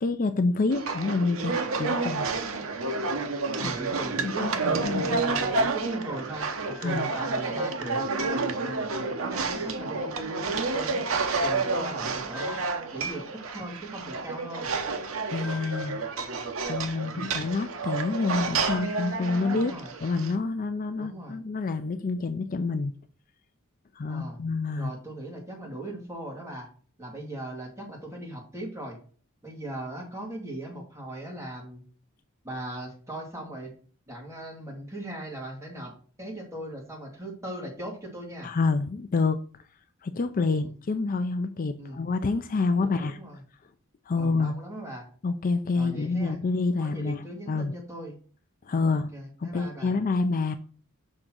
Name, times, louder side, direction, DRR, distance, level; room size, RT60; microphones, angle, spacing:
voice 1, 0.0-2.3 3.6-3.7 4.2-5.2 6.8-7.1 15.2-16.0 16.7-19.7 20.0-22.9 24.0-24.9 38.4-39.4 40.0-43.2 44.1-44.5 45.2-47.8 48.7-49.1 49.4-50.6, left 3 dB, 40° left, 9 dB, 0.4 m, -28 dB
sound 1, 0.7-20.4, right 3 dB, 70° right, 0.9 m, -30 dB
voice 2, 3.5-8.9 9.2-11.0 11.4-12.6 12.9-14.7 17.0-17.3 19.5-19.9 21.0-21.4 24.1-24.4 24.7-26.7 27.0-29.0 29.4-31.8 32.4-33.7 34.1-35.9 36.2-38.5 40.5-40.7 41.8-42.0 42.8-43.4 44.2-45.1 45.7-46.4 46.8-48.2 48.9-49.9, right 1 dB, 15° right, -2 dB, 2.3 m, -39 dB
6.5 x 3.6 x 6.1 m, 0.42 s
head